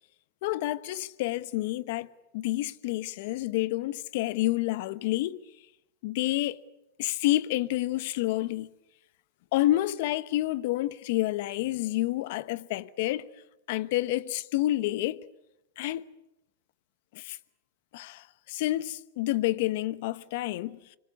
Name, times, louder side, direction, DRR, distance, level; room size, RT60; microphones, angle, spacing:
voice 1, 0.4-2.1 2.3-5.4 6.0-6.6 7.0-8.7 9.5-13.3 13.7-15.2 15.8-16.0 17.1-17.4 17.9-20.8, left 16 dB, 60° left, 1.0 m, -29 dB
25.5 x 24.5 x 8.3 m
hypercardioid pair, 125°, 0 cm